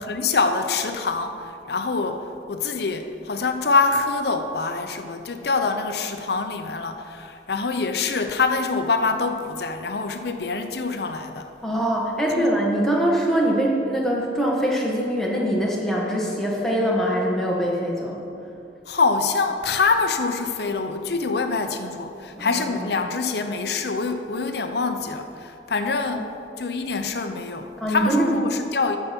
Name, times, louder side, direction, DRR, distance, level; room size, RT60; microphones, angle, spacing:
voice 1, 0.0-11.5 18.9-26.3 26.6-29.0, left 4 dB, 65° left, 7 dB, 0.7 m, -25 dB
voice 2, 11.6-18.2 22.3-22.9 26.1-26.3 27.8-28.3, right 1 dB, 5° left, -4 dB, 1.5 m, -23 dB
14.0 x 5.8 x 5.2 m, 2.6 s
head